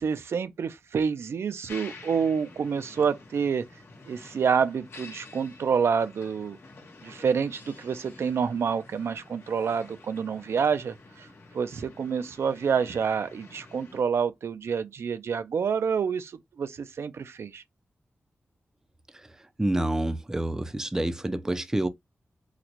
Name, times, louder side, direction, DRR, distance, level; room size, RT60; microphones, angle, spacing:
voice 1, 0.0-3.6 4.1-6.6 7.0-11.3 11.5-16.3 16.6-17.6, right 6 dB, 80° right, 0.4 m, -28 dB
Building Site, 1.7-14.0, left 3 dB, 75° left, 1.0 m, -49 dB
voice 2, 19.6-21.9, right 1 dB, 10° right, 0.4 m, -28 dB
4.0 x 2.1 x 2.9 m
wide cardioid pair, 125°, 4 cm